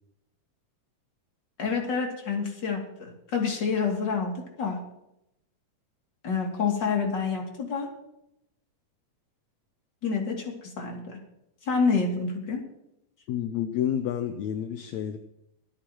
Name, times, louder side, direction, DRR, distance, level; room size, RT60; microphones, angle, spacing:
voice 1, 1.6-4.3 4.6-4.8 6.2-7.9 10.0-11.2 11.6-12.6, left 5 dB, 35° left, 1 dB, 2.9 m, -28 dB
voice 2, 13.3-15.2, left 10 dB, 75° left, 8 dB, 1.8 m, -29 dB
24.5 x 9.6 x 3.0 m, 0.81 s
omnidirectional pair, 3.8 m